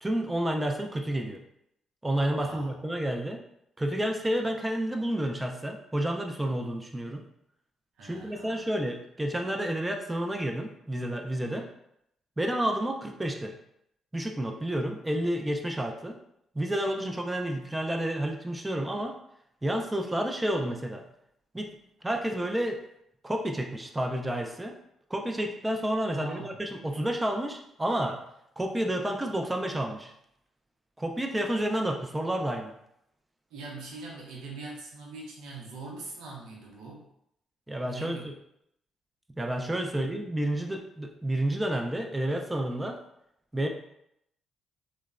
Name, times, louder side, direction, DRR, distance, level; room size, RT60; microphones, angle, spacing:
voice 1, 0.0-1.4 2.0-3.4 3.8-7.2 8.0-11.6 12.4-13.5 14.1-16.2 16.5-19.2 19.6-21.0 21.5-21.7 22.0-22.8 23.2-24.8 25.1-28.2 28.6-30.1 31.0-32.7 37.7-38.2 39.4-43.0 43.5-43.7, right 1 dB, 15° right, 3 dB, 0.3 m, -30 dB
voice 2, 2.4-2.9 8.0-8.7 11.5-11.6 26.1-26.6 33.5-37.1 37.8-38.3 39.9-40.0, right 3 dB, 85° right, -3 dB, 0.6 m, -43 dB
3.0 x 2.0 x 2.3 m, 0.77 s
cardioid pair, 90°, 0 cm